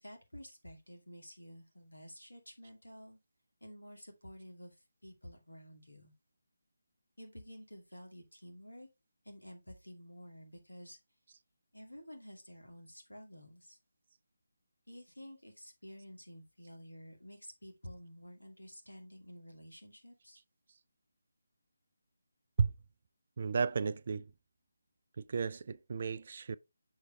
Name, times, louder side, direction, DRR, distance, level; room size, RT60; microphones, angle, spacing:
voice 1, 0.0-3.2 3.6-4.7 5.0-6.1 7.2-8.9 9.2-11.0 11.7-13.8 14.9-20.4, equal, 80° left, 2.3 m, -51 dB
voice 2, 23.4-24.3 25.2-26.6, right 5 dB, 45° right, 0.3 m, -33 dB
6.4 x 5.1 x 3.3 m
figure-of-eight pair, 155°, 0 cm